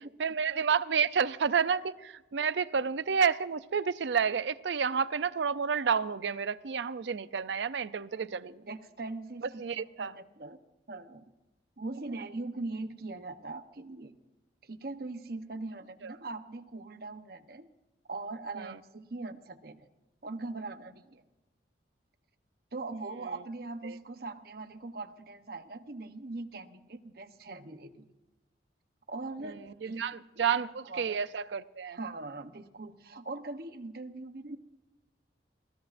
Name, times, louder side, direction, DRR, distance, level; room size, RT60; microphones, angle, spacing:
voice 1, 0.2-8.5 9.6-10.1 16.0-16.1 18.6-18.7 23.8-24.0 29.4-29.5 29.8-32.0, right 6 dB, 75° right, 0.5 m, -30 dB
voice 2, 8.1-10.6 10.9-11.2 11.8-14.1 14.6-17.7 18.1-19.9 20.2-21.2 22.7-28.0 29.1-29.6 29.8-31.2 31.9-34.6, right 3 dB, 55° right, 0.9 m, -41 dB
26.5 x 16.0 x 2.6 m
head